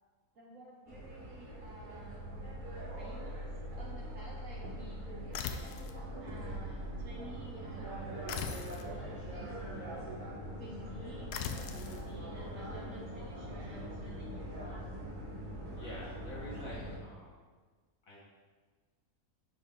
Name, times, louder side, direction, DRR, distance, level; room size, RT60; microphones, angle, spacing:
voice 1, 0.3-9.5 10.6-14.6, right 2 dB, 60° right, -2 dB, 1.1 m, -53 dB
sound 1, 0.9-17.0, right 1 dB, 35° right, 1.2 m, -42 dB
sound 2, 5.3-6.0 8.3-8.9 11.3-12.0, left 7 dB, 80° left, 1.1 m, -39 dB
voice 2, 15.7-17.3 18.0-18.2, left 1 dB, 60° left, -6 dB, 1.6 m, -47 dB
10.5 x 4.1 x 3.7 m, 1.4 s
omnidirectional pair, 1.7 m